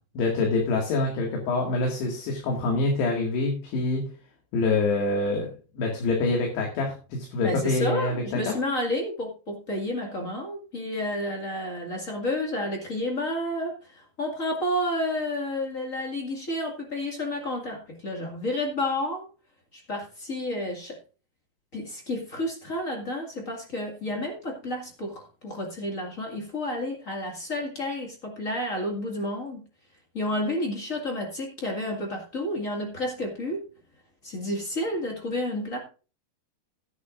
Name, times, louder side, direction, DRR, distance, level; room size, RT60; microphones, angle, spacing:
voice 1, 0.2-4.0 4.5-5.5 5.8-8.5, left 3 dB, 70° left, 0 dB, 4.0 m, -26 dB
voice 2, 7.4-19.2 19.7-21.0 21.7-29.6 30.1-33.6 34.2-35.8, left 1 dB, 40° left, 1 dB, 1.1 m, -30 dB
16.5 x 9.7 x 2.5 m, 0.35 s
omnidirectional pair, 5.1 m